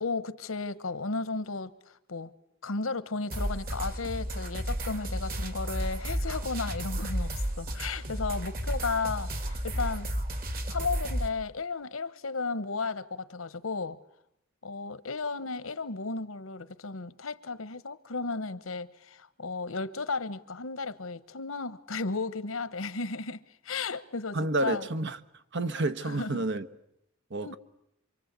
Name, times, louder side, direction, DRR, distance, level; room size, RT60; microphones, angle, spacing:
voice 1, 0.0-2.3 2.6-10.1 10.7-14.0 14.6-24.8 26.1-26.4 27.4-27.6, left 4 dB, 90° left, 1.1 m, -34 dB
sound 1, 3.3-11.3, equal, 45° right, 2.8 m, -33 dB
voice 2, 24.3-25.2 25.5-26.7 27.3-27.6, right 2 dB, 60° right, 1.3 m, -29 dB
27.5 x 24.5 x 8.2 m
head